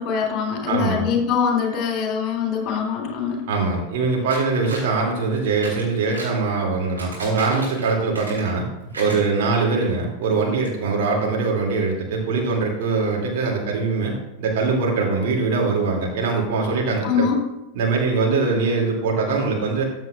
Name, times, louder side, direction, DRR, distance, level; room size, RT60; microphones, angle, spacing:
voice 1, 0.0-3.5 17.0-17.4, left 6 dB, 35° left, 0 dB, 3.5 m, -23 dB
voice 2, 0.7-1.1 3.5-8.7 9.0-17.3 17.7-19.8, right 4 dB, 50° right, -1 dB, 2.6 m, -22 dB
sound 1, 4.3-4.9 5.5-6.4 6.8-8.6 8.9-9.8 10.2-10.3 10.6-10.7, right 2 dB, 80° right, 4.1 m, -36 dB
14.5 x 8.9 x 2.5 m, 0.91 s
figure-of-eight pair, 90°, 0 cm